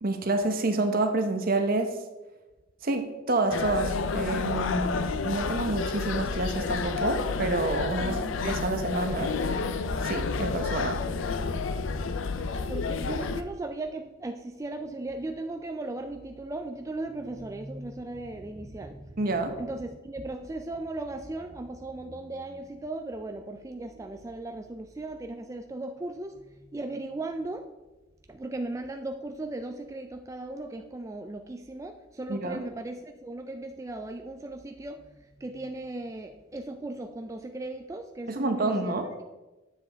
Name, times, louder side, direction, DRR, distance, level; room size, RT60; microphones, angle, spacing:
voice 1, 0.0-2.0 2.8-9.3 10.0-11.0 19.2-19.6 32.3-32.6 38.3-39.1, right 2 dB, 50° right, 6 dB, 0.8 m, -28 dB
sound 1, 3.5-13.4, left 4 dB, 85° left, 0.5 m, -30 dB
voice 2, 8.0-8.4 12.7-27.6 28.3-39.2, right 2 dB, 15° right, 5 dB, 0.3 m, -37 dB
7.6 x 7.3 x 3.4 m, 1.1 s
head